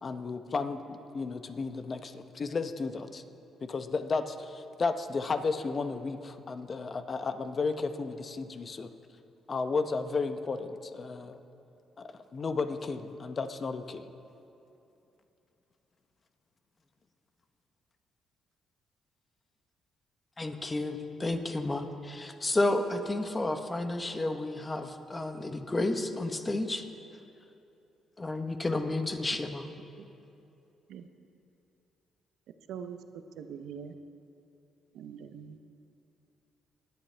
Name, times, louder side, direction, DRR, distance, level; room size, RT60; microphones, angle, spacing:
voice 1, 0.0-3.2 3.7-8.9 9.5-11.4 12.0-14.0, left 4 dB, 40° left, 8 dB, 0.8 m, -33 dB
voice 2, 20.4-26.8 28.2-29.7, left 2 dB, 20° left, 6 dB, 1.1 m, -31 dB
voice 3, 33.4-33.9 34.9-35.6, right 7 dB, 80° right, 8 dB, 0.7 m, -42 dB
23.5 x 10.0 x 3.4 m, 2.8 s
cardioid pair, 90°, 0 cm